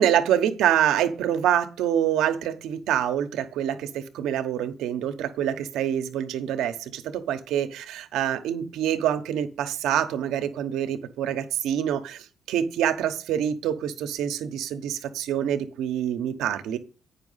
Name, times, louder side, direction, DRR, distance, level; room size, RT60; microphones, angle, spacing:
voice 1, 0.0-16.8, right 10 dB, 85° right, 9 dB, 1.0 m, -26 dB
9.0 x 5.7 x 5.6 m, 0.36 s
cardioid pair, 90°, 0 cm